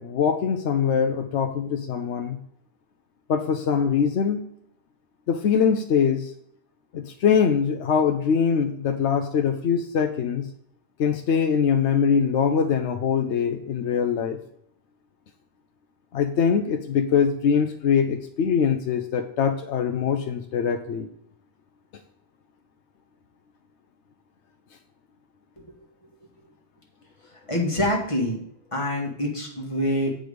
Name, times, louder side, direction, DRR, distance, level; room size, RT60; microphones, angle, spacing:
voice 1, 0.0-2.4 3.3-4.4 5.3-6.3 6.9-10.5 11.0-14.4 16.1-21.1, left 7 dB, 85° left, 4 dB, 1.0 m, -23 dB
voice 2, 27.2-28.4 28.7-30.2, left 1 dB, 30° left, -1 dB, 1.8 m, -26 dB
7.9 x 5.2 x 5.0 m, 0.70 s
omnidirectional pair, 1.1 m